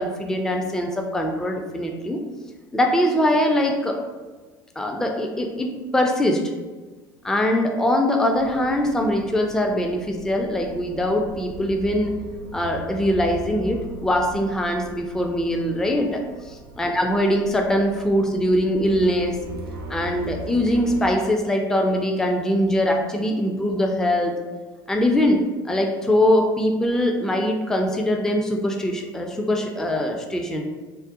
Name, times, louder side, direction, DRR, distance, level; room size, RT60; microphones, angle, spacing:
voice 1, 0.0-2.2 2.7-4.0 4.8-6.4 7.2-12.2 12.5-19.4 19.9-24.3 24.9-30.6, left 1 dB, 5° left, 3 dB, 0.3 m, -22 dB
sound 1, 8.3-21.1, right 3 dB, 85° right, 0.5 m, -39 dB
3.7 x 2.0 x 2.6 m, 1.3 s
hypercardioid pair, 70°, 12 cm